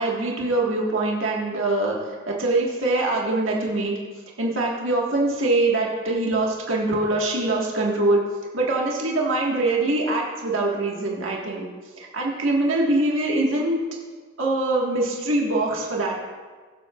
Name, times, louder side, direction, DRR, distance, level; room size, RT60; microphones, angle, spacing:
voice 1, 0.0-1.9 2.3-4.0 4.4-8.2 8.5-11.6 12.0-13.8 14.4-16.2, right 2 dB, 85° right, -3 dB, 1.7 m, -23 dB
22.0 x 7.8 x 2.5 m, 1.4 s
head